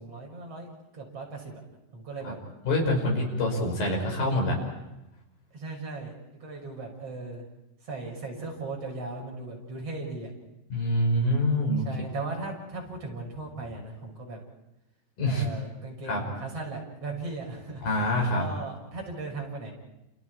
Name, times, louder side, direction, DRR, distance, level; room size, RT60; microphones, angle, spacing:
voice 1, 0.0-1.6 1.9-2.4 5.5-6.1 6.4-7.5 7.8-10.3 11.8-14.4 15.3-19.7, right 3 dB, 35° right, 0 dB, 7.3 m, -37 dB
voice 2, 2.7-4.6 10.7-11.9 15.2-15.4 16.1-16.2 17.8-18.5, left 1 dB, 60° left, 1 dB, 7.6 m, -25 dB
29.5 x 29.0 x 4.8 m, 0.93 s
omnidirectional pair, 4.6 m